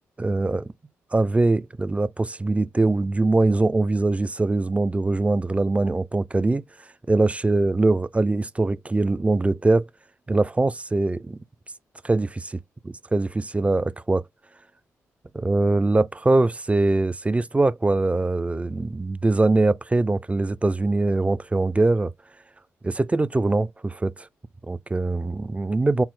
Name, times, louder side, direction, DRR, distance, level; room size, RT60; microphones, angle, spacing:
voice 1, 0.2-0.7 1.1-6.6 7.1-9.9 10.3-11.4 12.0-12.3 12.8-14.2 15.3-22.1 22.8-24.3 24.7-26.0, right 2 dB, 20° right, 0.5 m, -22 dB
4.3 x 2.0 x 3.8 m
supercardioid pair, 45°, 6 cm